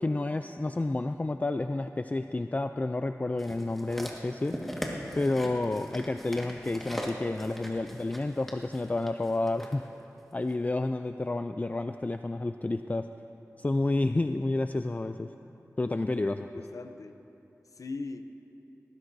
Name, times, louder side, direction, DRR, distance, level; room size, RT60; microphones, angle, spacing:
voice 1, 0.0-9.9 10.3-13.1 13.6-15.3 15.8-16.7, left 2 dB, 25° left, 8 dB, 0.3 m, -30 dB
sound 1, 3.4-9.7 10.5-10.6, equal, 5° left, 1.7 m, -40 dB
voice 2, 5.0-5.3 15.9-16.0 16.5-17.2 17.8-18.2, left 3 dB, 90° left, 8 dB, 0.6 m, -40 dB
19.0 x 16.0 x 2.7 m, 2.9 s
wide cardioid pair, 60°, 6 cm